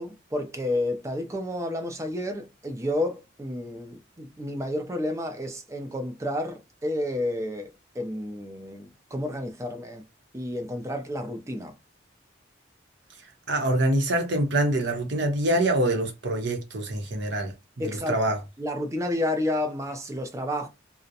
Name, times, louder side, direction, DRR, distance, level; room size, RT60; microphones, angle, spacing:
voice 1, 0.0-10.0 10.3-11.7 17.8-18.2 18.6-20.7, left 1 dB, 15° right, 0.4 m, -31 dB
voice 2, 13.5-18.4, right 1 dB, 65° right, 0.7 m, -25 dB
2.4 x 2.0 x 2.7 m
head